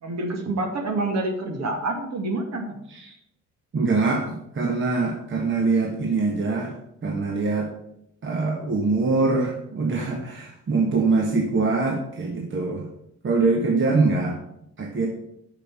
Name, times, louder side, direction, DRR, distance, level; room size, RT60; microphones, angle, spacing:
voice 1, 0.0-2.7, right 2 dB, 60° right, 3 dB, 2.2 m, -27 dB
voice 2, 3.7-4.3 4.5-6.7 7.0-7.7 8.2-12.9 13.2-14.4 14.8-15.1, right 3 dB, 40° right, 2 dB, 1.4 m, -23 dB
6.6 x 6.1 x 7.5 m, 0.79 s
cardioid pair, 90°, 30 cm